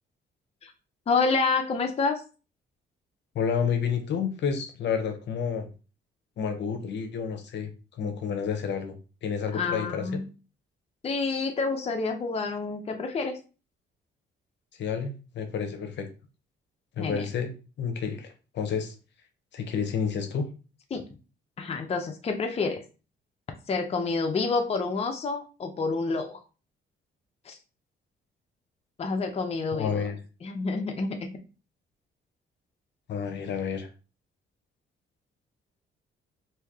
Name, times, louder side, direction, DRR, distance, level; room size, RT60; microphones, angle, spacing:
voice 1, 1.1-2.2 9.5-10.3 11.0-13.4 17.0-17.3 20.9-21.0 21.6-22.8 23.7-26.4 27.4-27.6 29.0-30.1 30.4-31.3, left 4 dB, 30° left, 4 dB, 0.6 m, -28 dB
voice 2, 3.3-5.7 6.4-7.7 8.0-8.9 9.2-10.2 14.8-16.1 17.0-18.9 19.5-20.5 29.7-30.1 33.1-33.9, left 6 dB, 65° left, 7 dB, 0.7 m, -30 dB
3.2 x 2.7 x 3.5 m, 0.34 s
cardioid pair, 90°, 20 cm